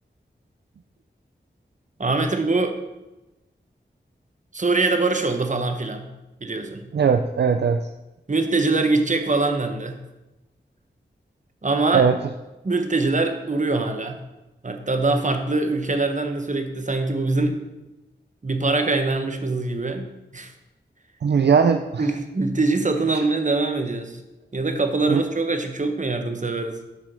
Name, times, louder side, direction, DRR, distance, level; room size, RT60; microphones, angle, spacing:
voice 1, 2.0-2.8 4.5-6.1 6.4-6.9 8.3-10.0 11.6-12.1 12.6-14.2 14.6-17.6 18.4-20.5 22.0-24.2 24.5-26.8, right 3 dB, 40° right, 5 dB, 1.0 m, -23 dB
voice 2, 6.9-7.8 11.9-12.2 21.2-22.1 23.1-23.2 25.1-25.2, right 6 dB, 65° right, 7 dB, 0.4 m, -19 dB
6.9 x 5.0 x 6.1 m, 1.0 s
wide cardioid pair, 50°, 19 cm